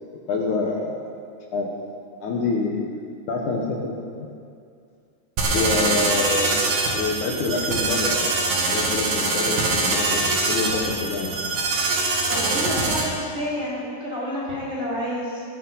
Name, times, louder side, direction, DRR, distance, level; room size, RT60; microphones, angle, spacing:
voice 1, 0.3-1.1 1.5-1.7 2.2-2.9 3.3-4.3 5.5-6.6 6.9-8.3 8.7-11.4, left 3 dB, 70° left, 0 dB, 2.6 m, -26 dB
sound 1, 5.4-13.0, right 3 dB, 70° right, 3.6 m, -23 dB
voice 2, 12.3-15.4, equal, 20° right, -8 dB, 4.2 m, -29 dB
20.0 x 9.2 x 5.6 m, 2.3 s
omnidirectional pair, 3.9 m